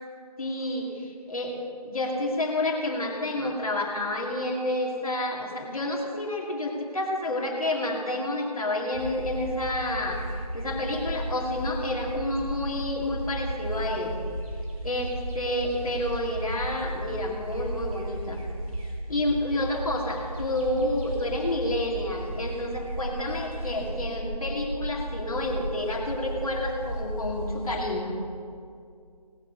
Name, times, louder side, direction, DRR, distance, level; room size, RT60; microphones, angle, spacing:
voice 1, 0.4-1.5 1.8-10.2 10.5-14.1 14.8-18.4 19.1-28.2, left 1 dB, 60° left, 0 dB, 2.5 m, -29 dB
sound 1, 8.9-27.8, right 1 dB, 55° right, 2.7 m, -35 dB
18.5 x 6.4 x 6.8 m, 2.3 s
figure-of-eight pair, 165°, 21 cm